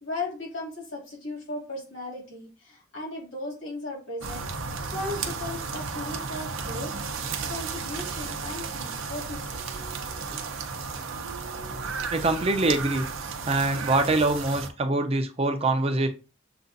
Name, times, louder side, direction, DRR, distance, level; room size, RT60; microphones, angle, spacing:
voice 1, 0.0-4.5 4.9-6.9 7.5-9.6 10.2-10.4, left 2 dB, 70° left, -3 dB, 2.3 m, -36 dB
sound 1, 4.2-14.7, right 4 dB, 75° right, 0.6 m, -34 dB
voice 2, 12.1-13.1 13.4-16.1, right 2 dB, 30° right, 6 dB, 0.5 m, -24 dB
6.7 x 2.4 x 2.6 m, 0.34 s
head